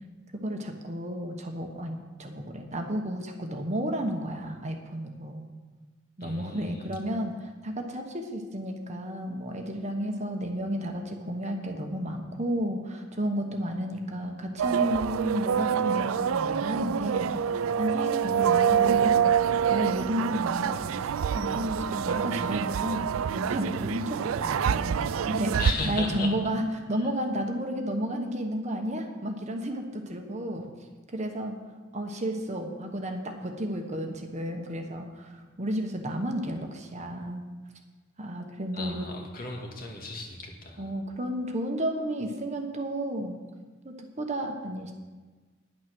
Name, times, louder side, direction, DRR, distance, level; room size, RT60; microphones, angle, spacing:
voice 1, 0.4-5.5 6.2-17.4 17.8-19.4 19.7-21.1 21.3-23.1 23.4-25.5 25.8-26.6 26.9-30.7 31.1-31.6 31.9-37.5 38.2-39.1 40.8-43.4 43.8-44.9, equal, 35° right, 4 dB, 1.1 m, -32 dB
voice 2, 6.2-6.9 25.6-26.3 26.9-27.1 30.5-30.6 38.7-40.9, left 2 dB, 45° left, 1 dB, 1.8 m, -36 dB
sound 1, 14.6-25.7, right 8 dB, 75° right, 0.4 m, -26 dB
10.5 x 9.3 x 6.2 m, 1.3 s
head